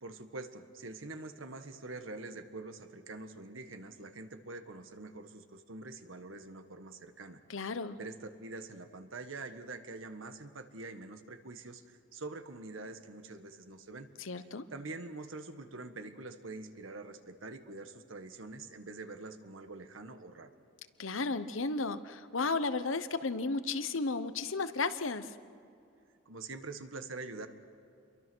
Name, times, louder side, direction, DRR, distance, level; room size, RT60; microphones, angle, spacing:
voice 1, 0.0-7.4 8.0-14.1 14.7-20.5 26.3-27.5, right 3 dB, 80° right, 8 dB, 1.6 m, -45 dB
voice 2, 7.5-8.0 14.2-14.6 21.0-25.3, left 3 dB, 80° left, 12 dB, 1.0 m, -34 dB
28.5 x 23.0 x 6.3 m, 2.5 s
head